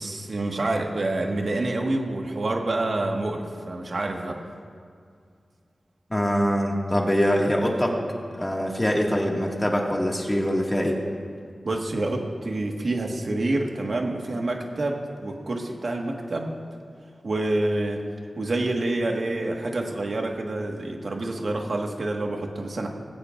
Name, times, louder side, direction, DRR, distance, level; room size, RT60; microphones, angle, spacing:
voice 1, 0.0-4.4 11.6-16.6 17.2-22.9, right 2 dB, 65° right, 1 dB, 1.6 m, -27 dB
voice 2, 6.1-8.0 8.3-11.0, equal, 15° left, -1 dB, 2.0 m, -23 dB
19.5 x 16.5 x 2.6 m, 2.2 s
wide cardioid pair, 80°, 0 cm